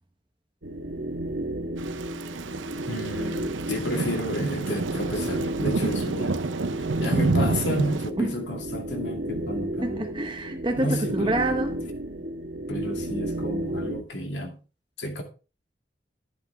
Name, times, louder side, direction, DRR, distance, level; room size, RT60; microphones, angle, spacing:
sound 1, 0.6-14.0, right 1 dB, 70° right, 1.6 m, -33 dB
Thunder / Rain, 1.8-8.1, right 3 dB, 85° right, 0.7 m, -29 dB
voice 1, 2.9-6.4 6.8-10.1 10.8-11.4 12.7-14.6 15.0-15.2, equal, 70° left, 2.3 m, -31 dB
voice 2, 9.8-11.7, right 1 dB, 25° right, 0.8 m, -27 dB
11.5 x 9.5 x 3.4 m
head